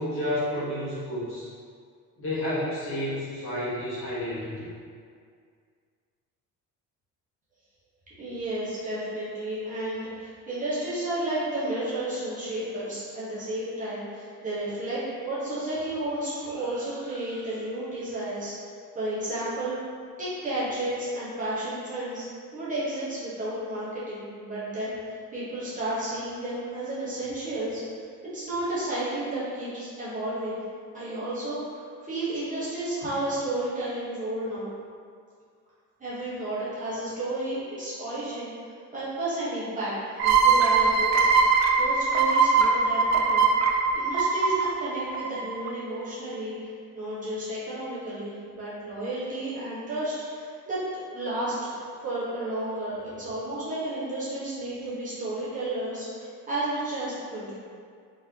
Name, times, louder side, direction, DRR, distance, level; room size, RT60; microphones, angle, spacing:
voice 1, 0.0-1.5 2.2-4.7, left 1 dB, 40° left, -9 dB, 1.2 m, -30 dB
voice 2, 8.2-18.5 18.9-19.8 20.2-22.3 22.5-27.8 28.2-30.6 30.9-34.7 36.0-38.5 38.9-39.9 40.2-41.1 41.8-57.5, right 1 dB, 25° right, -10 dB, 1.1 m, -32 dB
sound 1, 40.2-45.7, right 5 dB, 55° right, 0.4 m, -21 dB
3.9 x 3.2 x 2.9 m, 2.2 s
cardioid pair, 160°, 33 cm